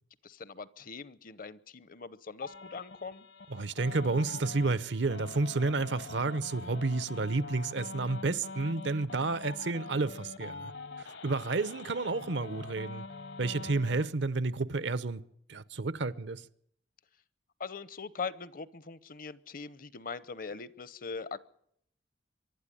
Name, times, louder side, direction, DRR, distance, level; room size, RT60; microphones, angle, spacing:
voice 1, 0.2-3.3 17.6-21.4, left 5 dB, 50° left, 0.7 m, -41 dB
sound 1, 2.4-14.1, left 3 dB, 70° left, 1.3 m, -44 dB
voice 2, 3.5-10.7 11.0-13.1 13.4-15.2 15.5-16.4, right 3 dB, 70° right, 0.8 m, -31 dB
24.0 x 12.0 x 9.9 m
head